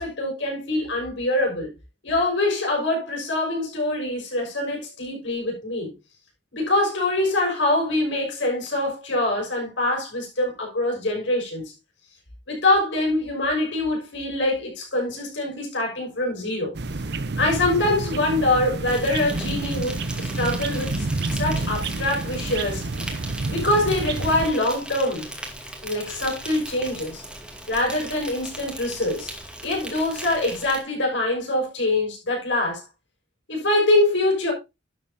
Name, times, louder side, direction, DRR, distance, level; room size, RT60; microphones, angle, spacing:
voice 1, 0.0-1.7 2.0-5.9 6.5-11.7 12.5-16.7 17.4-22.9 23.5-25.3 25.8-27.2 27.7-29.3 29.6-32.8 33.5-34.5, left 2 dB, 75° left, 6.3 m, -24 dB
sound 1, 16.7-24.5, right 3 dB, 60° right, 0.8 m, -29 dB
Insect, 18.9-30.8, right 1 dB, 5° right, 2.4 m, -38 dB
11.5 x 8.9 x 2.8 m
head